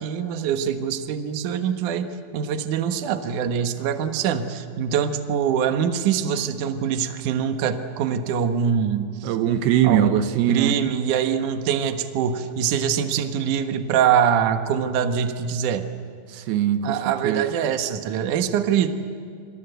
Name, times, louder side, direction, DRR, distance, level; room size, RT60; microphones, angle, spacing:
voice 1, 0.0-2.1 2.3-9.4 9.8-10.1 10.5-15.8 16.8-18.9, right 8 dB, 60° right, 7 dB, 2.5 m, -24 dB
voice 2, 9.2-10.7 16.3-17.0 17.2-17.4, right 10 dB, 80° right, 9 dB, 2.9 m, -21 dB
28.0 x 26.0 x 8.1 m, 2.4 s
omnidirectional pair, 4.6 m